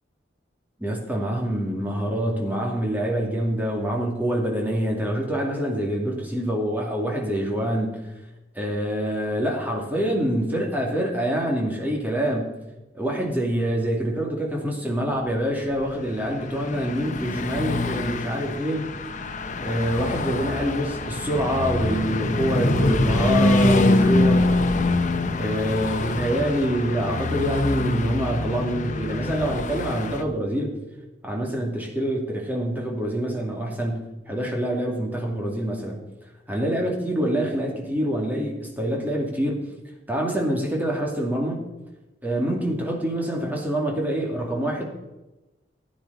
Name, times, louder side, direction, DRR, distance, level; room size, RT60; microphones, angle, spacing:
voice 1, 0.8-8.0 8.5-12.5 12.9-18.9 19.6-24.5 25.3-30.8 31.2-36.0 36.5-39.7 40.1-41.6 42.2-44.8, equal, 10° right, -1 dB, 2.4 m, -26 dB
Car passing by / Truck, 15.8-30.2, left 2 dB, 45° left, 0.8 m, -24 dB
15.0 x 9.7 x 4.0 m, 1.0 s
head